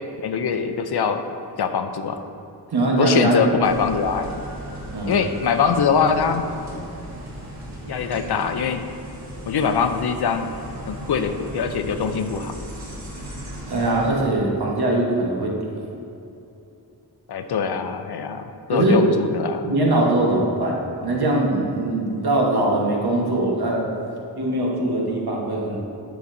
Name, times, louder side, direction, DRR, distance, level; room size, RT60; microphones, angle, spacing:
voice 1, 0.2-1.2 1.6-2.2 3.0-4.4 5.1-6.5 7.9-8.9 9.5-10.5 10.9-12.6 17.3-19.7, left 6 dB, 70° left, 8 dB, 0.6 m, -23 dB
voice 2, 2.7-3.5 4.9-5.1 13.7-15.8 18.7-19.0 19.6-23.8 24.4-25.8, right 2 dB, 70° right, -2 dB, 1.3 m, -21 dB
sound 1, 3.6-14.1, right 1 dB, 45° right, 1.5 m, -36 dB
10.0 x 7.0 x 2.6 m, 2.8 s
wide cardioid pair, 100°, 40 cm